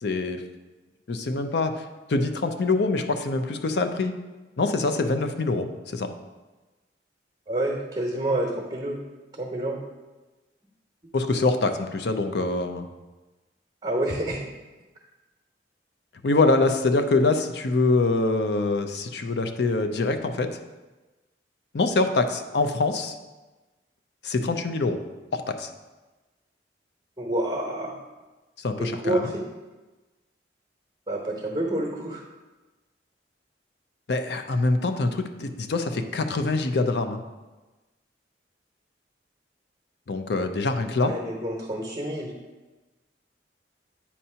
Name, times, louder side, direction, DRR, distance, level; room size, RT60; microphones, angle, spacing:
voice 1, 0.0-0.4 1.1-1.8 2.1-4.1 4.6-6.1 11.1-12.8 16.2-20.5 21.7-23.1 24.2-25.0 25.3-25.7 28.6-29.3 34.1-37.2 40.1-41.1, left 3 dB, 65° left, 7 dB, 0.5 m, -24 dB
voice 2, 7.5-9.0 9.3-9.8 13.8-14.5 27.2-28.0 28.8-29.4 31.1-32.2 41.0-42.3, right 1 dB, 25° right, -1 dB, 0.9 m, -28 dB
8.5 x 2.8 x 5.5 m, 1.2 s
head